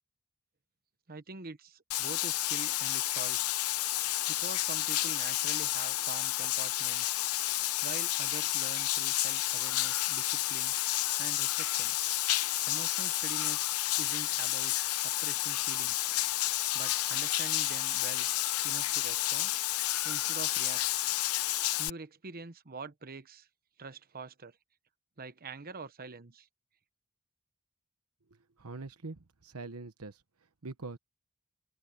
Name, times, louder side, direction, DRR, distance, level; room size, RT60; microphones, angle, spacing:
voice 1, 1.1-3.6 4.3-7.2 7.8-10.8 11.2-12.0 12.3-13.6 13.9-16.1 16.7-18.3 18.6-19.5 20.0-21.0 21.8-23.5 23.8-24.6 25.2-26.5, right 4 dB, 45° right, 1.1 m, -45 dB
Bathtub (filling or washing), 1.9-21.9, left 15 dB, 80° left, 0.8 m, -31 dB
voice 2, 28.6-30.2 30.6-31.0, right 3 dB, 80° right, 1.1 m, -43 dB
open air
head